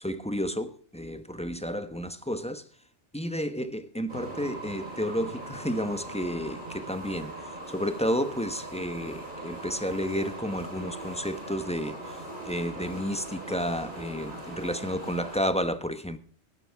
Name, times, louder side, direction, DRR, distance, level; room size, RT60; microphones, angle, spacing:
voice 1, 0.0-2.6 3.1-7.3 7.7-16.2, equal, 5° left, 1.0 m, -31 dB
sound 1, 4.1-15.4, right 1 dB, 45° right, 4.7 m, -40 dB
17.0 x 12.0 x 3.5 m
omnidirectional pair, 1.1 m